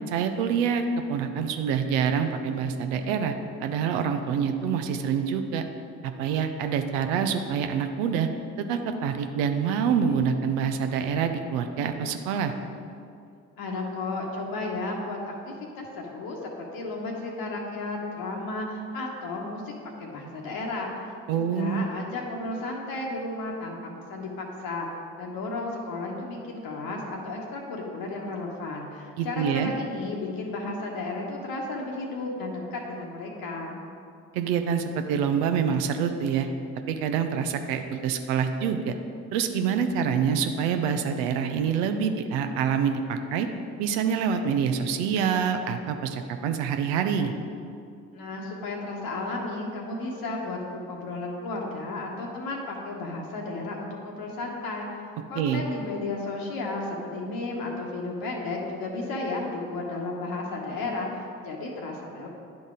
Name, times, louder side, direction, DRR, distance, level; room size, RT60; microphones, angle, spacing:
voice 1, 0.1-3.3 3.6-5.6 6.0-8.3 8.6-12.5 21.3-21.8 29.2-29.7 34.3-36.5 36.9-38.9 39.3-43.5 43.8-47.3 55.4-55.6, right 7 dB, 70° right, 7 dB, 0.6 m, -26 dB
voice 2, 13.6-15.3 15.8-19.7 20.0-24.9 25.2-33.8 48.1-54.9 55.3-62.3, left 2 dB, 60° left, -1 dB, 1.1 m, -33 dB
10.5 x 3.9 x 3.7 m, 2.4 s
figure-of-eight pair, 40°, 40 cm